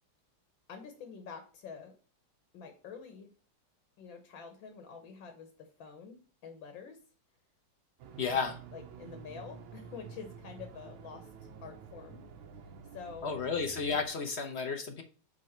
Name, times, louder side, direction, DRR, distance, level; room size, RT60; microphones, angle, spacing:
voice 1, 0.7-2.0 2.5-3.3 4.0-6.2 6.4-7.0 8.3-12.2 12.6-13.3, left 6 dB, 70° left, 6 dB, 1.9 m, -47 dB
sound 1, 8.0-14.1, right 6 dB, 80° right, 1.7 m, -49 dB
voice 2, 8.2-8.6 13.2-15.0, left 5 dB, 50° left, 6 dB, 0.8 m, -32 dB
6.7 x 4.9 x 4.4 m, 0.38 s
omnidirectional pair, 2.3 m